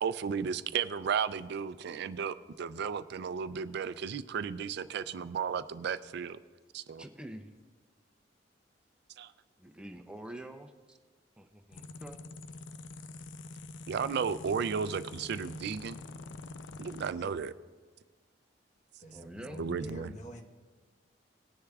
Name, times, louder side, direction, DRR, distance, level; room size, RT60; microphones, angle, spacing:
voice 1, 0.0-6.4 6.7-7.0 9.2-9.3 13.9-16.0 16.8-17.5 19.6-20.1, right 6 dB, 60° right, 14 dB, 0.4 m, -34 dB
voice 2, 7.0-7.5 9.6-11.0 11.4-12.2 19.1-19.6, right 1 dB, 5° right, 5 dB, 0.6 m, -46 dB
sound 1, 11.7-17.1, left 3 dB, 75° left, 0.4 m, -46 dB
voice 3, 19.0-20.4, left 1 dB, 40° left, 3 dB, 1.1 m, -46 dB
19.5 x 10.0 x 2.4 m, 1.4 s
head